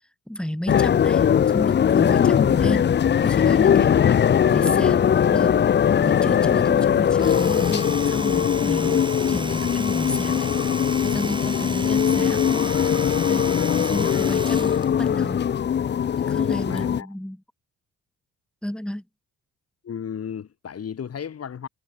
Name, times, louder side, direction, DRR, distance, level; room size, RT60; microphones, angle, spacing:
voice 1, 0.3-2.9 3.2-5.6 6.0-10.5 11.0-12.8 13.3-15.5 16.3-17.4 18.6-19.0, equal, 5° left, 6.7 m, -32 dB
sound 1, 0.7-17.0, left 8 dB, 35° left, 0.6 m, -20 dB
Domestic sounds home sounds, 7.1-14.9, right 2 dB, 15° right, 3.0 m, -35 dB
voice 2, 16.6-17.1 19.8-21.7, left 8 dB, 55° left, 7.7 m, -34 dB
cardioid pair, 90°, 30 cm